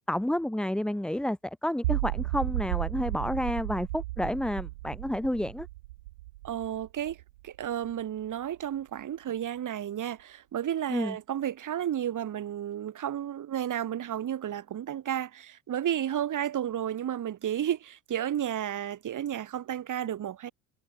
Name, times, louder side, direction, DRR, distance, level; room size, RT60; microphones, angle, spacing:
voice 1, 0.1-5.7 10.9-11.2, left 1 dB, ahead, 0.6 m, -30 dB
sound 1, 1.8-7.9, right 19 dB, 90° right, 0.7 m, -34 dB
voice 2, 6.4-7.2 7.4-20.5, right 10 dB, 45° right, 3.1 m, -32 dB
hypercardioid pair, 75°, 42 cm